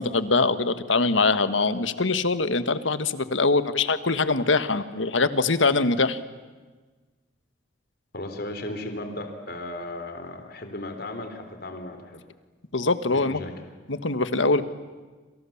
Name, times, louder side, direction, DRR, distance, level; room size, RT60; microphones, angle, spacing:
voice 1, 0.0-6.2 12.7-13.4 13.9-14.6, left 3 dB, 80° left, 12 dB, 1.5 m, -23 dB
voice 2, 8.1-12.2 13.1-13.5, left 1 dB, 55° left, 6 dB, 3.6 m, -35 dB
27.5 x 27.5 x 7.2 m, 1.3 s
head